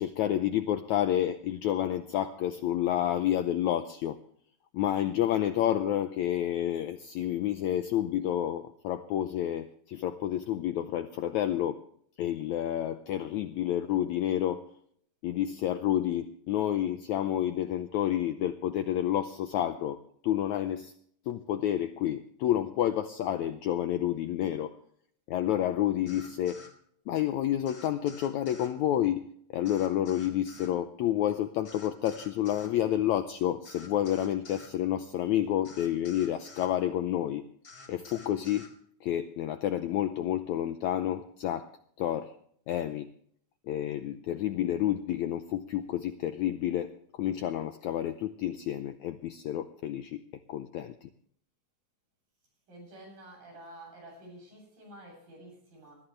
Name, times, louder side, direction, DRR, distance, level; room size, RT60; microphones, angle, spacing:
voice 1, 0.0-4.2 4.7-11.8 12.2-14.7 15.2-20.0 20.2-20.9 21.3-24.7 25.3-26.6 27.1-37.4 37.9-38.7 39.0-41.7 42.0-42.3 42.7-43.1 43.7-50.2 50.5-51.1, left 11 dB, 80° left, 1.7 m, -29 dB
sound 1, 26.1-26.7 27.7-28.7 29.6-30.7 31.6-32.7 33.6-34.7 35.6-36.7 37.6-38.7, left 3 dB, 35° left, 2.5 m, -50 dB
voice 2, 52.7-56.0, right 1 dB, 70° right, 9.8 m, -49 dB
22.0 x 13.0 x 3.3 m
omnidirectional pair, 4.1 m